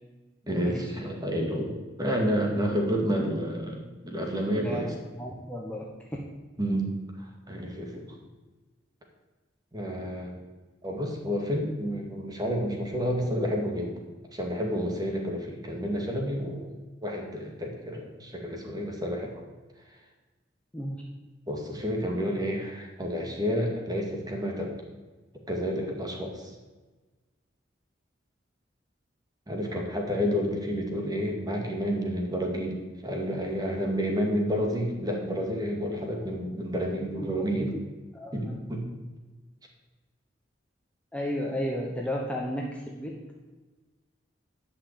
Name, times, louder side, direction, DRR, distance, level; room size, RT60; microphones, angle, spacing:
voice 1, 0.5-4.9 6.6-8.1 9.7-10.3 10.8-13.9 14.3-16.7 17.0-19.3 21.5-24.7 25.5-26.5 29.5-37.7 38.3-38.8, equal, 20° right, 1 dB, 2.2 m, -30 dB
voice 2, 4.6-5.8 20.7-21.0 37.2-37.8 38.1-38.6 41.1-43.1, equal, 5° left, -1 dB, 1.2 m, -33 dB
11.0 x 5.8 x 8.7 m, 1.2 s
head